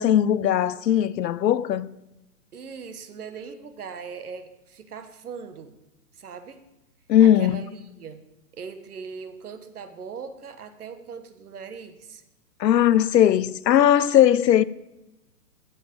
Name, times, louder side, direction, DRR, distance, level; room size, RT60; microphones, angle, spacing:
voice 1, 0.0-1.9 7.1-7.6 12.6-14.6, left 11 dB, 80° left, 0.7 m, -19 dB
voice 2, 2.5-5.7 6.1-6.6 7.2-8.2 8.5-12.2, right 6 dB, 65° right, 1.5 m, -40 dB
15.0 x 7.3 x 5.3 m
hypercardioid pair, 170°, 49 cm